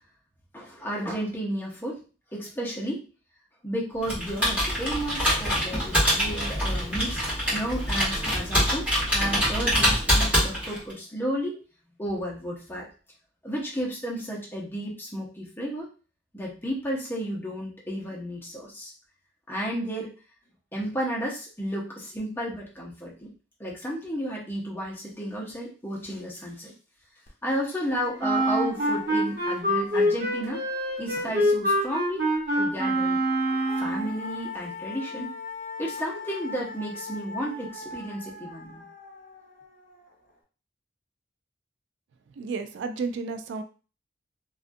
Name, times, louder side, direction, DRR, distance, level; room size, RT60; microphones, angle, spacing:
voice 1, 0.5-2.0 2.3-3.0 3.6-7.2 7.5-11.6 12.0-12.9 13.4-15.9 16.3-18.9 19.5-20.1 20.7-23.3 23.6-26.7 27.4-30.7 31.0-32.3 32.6-33.2 33.8-35.3 35.8-38.8, equal, 10° left, -4 dB, 0.7 m, -32 dB
Computer keyboard, 4.0-10.9, equal, 10° right, 1.2 m, -25 dB
sound 1, 27.3-27.4 27.7-31.4 33.0-40.3, left 3 dB, 45° left, 0.7 m, -41 dB
Wind instrument woodwind instrument, 28.2-34.1, equal, 55° right, 1.3 m, -25 dB
voice 2, 42.4-43.6, right 4 dB, 70° right, 8 dB, 0.3 m, -32 dB
2.5 x 2.3 x 2.5 m, 0.36 s
head